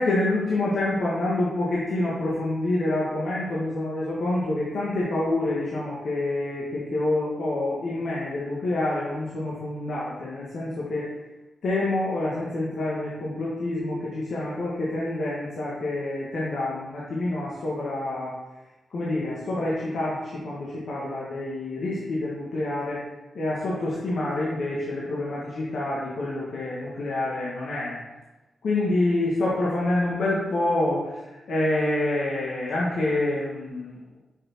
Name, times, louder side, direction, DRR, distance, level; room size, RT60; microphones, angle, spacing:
voice 1, 0.0-11.1 11.6-18.3 18.9-23.0 23.3-28.0 28.6-34.0, left 2 dB, 70° left, -7 dB, 1.5 m, -27 dB
6.2 x 4.3 x 4.5 m, 1.1 s
cardioid pair, 60°, 0 cm